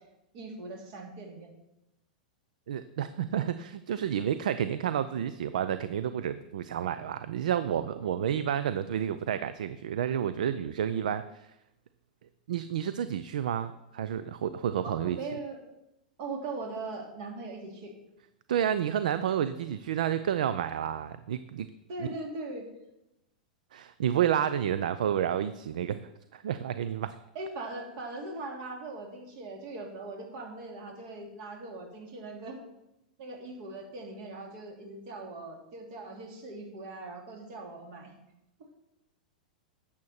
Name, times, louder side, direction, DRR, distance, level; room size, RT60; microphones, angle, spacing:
voice 1, 0.3-1.5 14.8-15.6 16.2-17.9 21.9-22.7 27.3-32.6 33.2-38.1, right 2 dB, 55° right, 1 dB, 2.8 m, -40 dB
voice 2, 2.7-11.5 12.5-15.2 18.5-21.7 22.0-22.1 23.7-27.2, right 9 dB, 70° right, 13 dB, 0.4 m, -30 dB
10.5 x 7.3 x 4.3 m, 0.90 s
hypercardioid pair, 100°, 4 cm